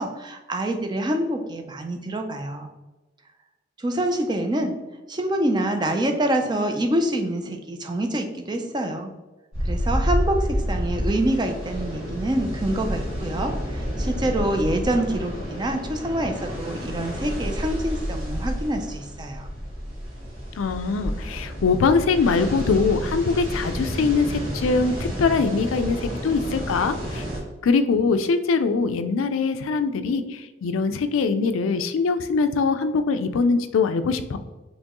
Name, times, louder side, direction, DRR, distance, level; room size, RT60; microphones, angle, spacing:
voice 1, 0.0-2.7 3.8-4.8 5.1-9.1 9.6-19.5, right 1 dB, 20° right, 5 dB, 0.4 m, -26 dB
sound 1, 9.5-27.4, equal, 90° right, 1.4 m, -29 dB
voice 2, 20.6-27.2 27.6-30.2 30.6-34.4, left 4 dB, 90° left, 10 dB, 0.4 m, -22 dB
4.3 x 3.1 x 2.9 m, 1.1 s
head